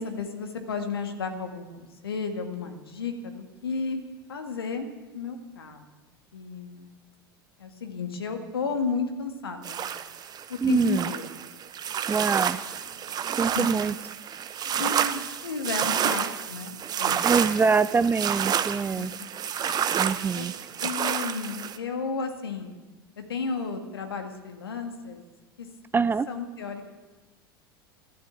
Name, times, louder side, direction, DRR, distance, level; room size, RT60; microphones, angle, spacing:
voice 1, 0.0-5.8 6.3-6.9 7.6-9.9 10.5-11.4 12.9-13.7 14.8-17.8 19.0-19.1 20.3-20.5 20.8-22.7 23.3-25.2 25.6-25.7 26.3-26.8, left 4 dB, 75° left, 5 dB, 2.1 m, -33 dB
sound 1, 9.6-21.8, right 9 dB, 35° right, 1.1 m, -29 dB
voice 2, 10.6-11.1 12.1-12.6 13.4-13.9 17.2-19.1 20.0-20.5 25.9-26.3, right 5 dB, 15° right, 15 dB, 0.5 m, -24 dB
13.5 x 13.0 x 8.4 m, 1.2 s
figure-of-eight pair, 75°, 12 cm